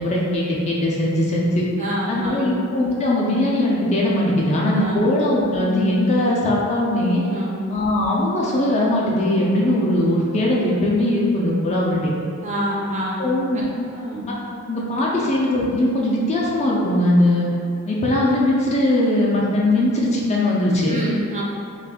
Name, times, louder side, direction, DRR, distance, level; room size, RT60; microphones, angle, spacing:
voice 1, 0.0-1.7 2.1-7.2 7.7-12.1 13.2-13.7 14.7-17.5 17.9-21.0, left 1 dB, 30° left, -4 dB, 0.4 m, -20 dB
voice 2, 1.8-2.5 4.7-5.1 7.3-7.6 12.4-13.2 13.9-14.3 15.1-15.3 20.9-21.4, equal, 35° right, -4 dB, 0.5 m, -27 dB
2.6 x 2.4 x 3.4 m, 2.4 s
head